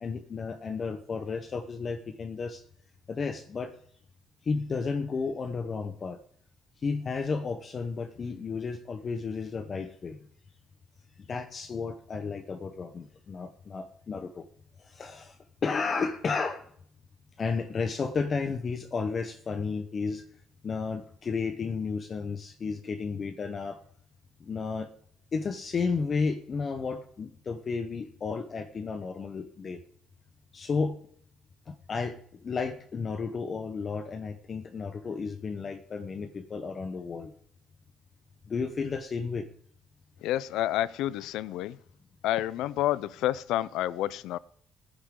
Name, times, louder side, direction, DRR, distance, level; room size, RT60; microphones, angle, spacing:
voice 1, 0.0-2.6 3.1-3.8 4.4-6.2 6.8-10.2 11.2-14.5 14.8-16.7 17.4-20.3 20.6-23.8 24.4-24.9 25.3-29.8 30.5-31.0 31.7-37.3 38.4-39.5, left 4 dB, 35° left, 8 dB, 0.9 m, -33 dB
voice 2, 40.2-41.8 42.2-44.4, left 13 dB, 90° left, 19 dB, 0.5 m, -29 dB
19.5 x 9.9 x 3.8 m, 0.63 s
cardioid pair, 140°, 0 cm